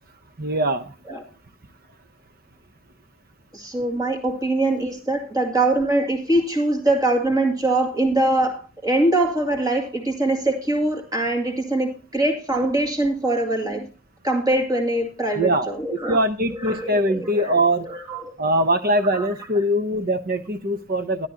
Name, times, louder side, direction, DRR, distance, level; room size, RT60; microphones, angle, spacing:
voice 1, 0.4-0.9 15.3-17.9 18.4-21.3, right 1 dB, 45° right, 0.9 m, -22 dB
voice 2, 3.5-13.9 14.2-16.2 16.6-18.3 19.1-19.3, right 2 dB, 15° right, 2.1 m, -23 dB
13.5 x 11.5 x 2.9 m
head